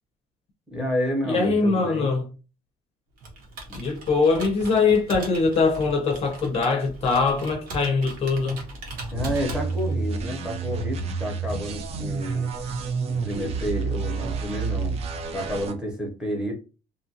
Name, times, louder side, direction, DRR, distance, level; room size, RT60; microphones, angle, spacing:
voice 1, 0.7-2.2 9.1-12.5 13.1-15.0 15.3-16.5, equal, 5° right, 0.8 m, -30 dB
voice 2, 1.3-2.3 3.7-8.6, left 4 dB, 40° left, 0.5 m, -22 dB
Computer keyboard, 3.2-10.1, right 1 dB, 70° right, 1.0 m, -39 dB
sound 1, 9.1-15.7, right 4 dB, 40° right, 0.4 m, -29 dB
2.7 x 2.5 x 2.7 m
cardioid pair, 155°, 15 cm